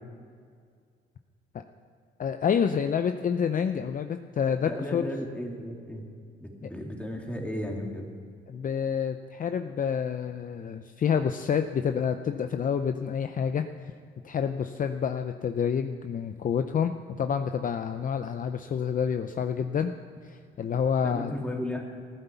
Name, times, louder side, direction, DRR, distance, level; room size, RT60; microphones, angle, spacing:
voice 1, 2.2-5.1 6.6-6.7 8.5-13.9 14.2-19.9 20.2-21.3, left 7 dB, 45° left, 8 dB, 0.6 m, -28 dB
voice 2, 4.7-6.0 6.4-8.1 21.0-21.8, left 1 dB, 5° left, 0 dB, 2.6 m, -34 dB
15.0 x 9.8 x 6.9 m, 2.1 s
cardioid pair, 90°, 20 cm